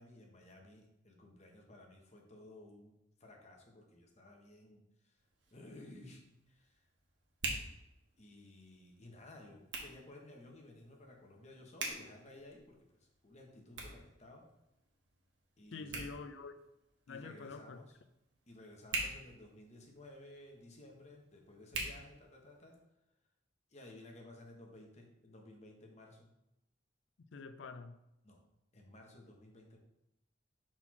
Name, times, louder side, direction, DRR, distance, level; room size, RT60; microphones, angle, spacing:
voice 1, 0.0-5.2 5.5-6.8 8.2-14.5 15.6-16.1 17.1-17.9 18.5-22.8 23.7-26.3 28.2-28.4 28.7-29.8, left 1 dB, 40° left, 1.2 m, -56 dB
Hands, 5.1-22.8, right 2 dB, 85° right, 1.3 m, -47 dB
voice 2, 15.7-16.5 17.1-17.8 27.3-28.0, left 4 dB, 75° left, 0.5 m, -47 dB
4.5 x 4.3 x 5.7 m
head